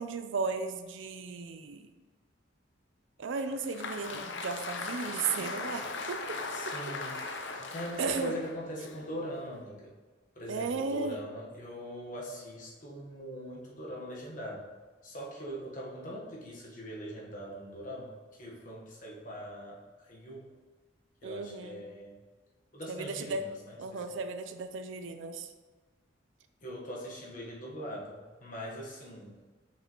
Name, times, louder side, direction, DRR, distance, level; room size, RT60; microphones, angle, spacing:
voice 1, 0.0-1.9 3.2-6.4 6.6-6.8 8.0-8.4 10.5-11.2 21.2-21.8 22.9-23.4 23.8-25.5, right 4 dB, 70° right, 8 dB, 0.5 m, -35 dB
Applause, 3.4-9.7, left 3 dB, 60° left, 0.6 m, -39 dB
voice 2, 6.5-7.2 7.7-9.9 10.3-14.7 15.0-20.5 21.2-22.2 22.7-24.2 26.6-29.3, equal, 40° left, -3 dB, 1.3 m, -42 dB
6.4 x 5.4 x 3.1 m, 1.3 s
head